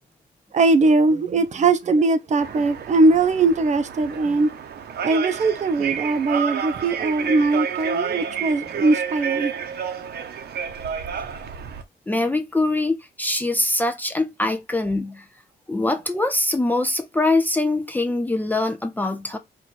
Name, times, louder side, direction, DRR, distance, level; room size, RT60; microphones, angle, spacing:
voice 1, 0.5-4.5 5.0-9.5, right 3 dB, 45° right, 0.6 m, -20 dB
sound 1, 2.4-11.8, right 7 dB, 80° right, 0.8 m, -30 dB
voice 2, 12.1-15.2 15.7-19.4, left 2 dB, 10° left, 0.4 m, -23 dB
4.6 x 2.4 x 4.1 m
wide cardioid pair, 170°, 17 cm